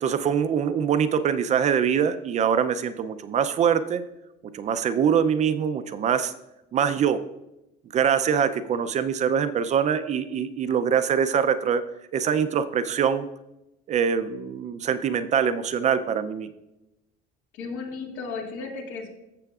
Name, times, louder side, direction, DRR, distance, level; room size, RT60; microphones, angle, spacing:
voice 1, 0.0-4.0 4.5-6.3 6.7-7.2 7.9-11.8 12.1-13.3 13.9-16.5, right 7 dB, 35° right, 11 dB, 0.5 m, -23 dB
voice 2, 17.5-19.1, left 4 dB, 75° left, 1 dB, 2.1 m, -34 dB
15.5 x 6.8 x 2.4 m, 0.92 s
cardioid pair, 145°, 20 cm